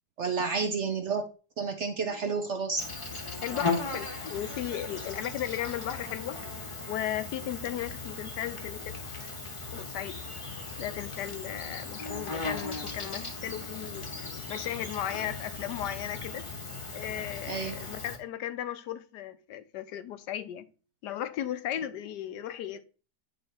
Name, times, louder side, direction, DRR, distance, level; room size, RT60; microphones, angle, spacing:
voice 1, 0.2-1.3 1.6-2.8 17.5-17.8, right 5 dB, 60° right, 0.8 m, -30 dB
Insect, 2.8-18.2, left 3 dB, 25° left, 0.9 m, -37 dB
voice 2, 3.4-6.4 6.9-9.0 9.7-10.2 10.8-16.4 16.9-20.7 21.0-22.8, left 11 dB, 80° left, 1.2 m, -36 dB
9.7 x 3.3 x 4.2 m
omnidirectional pair, 1.8 m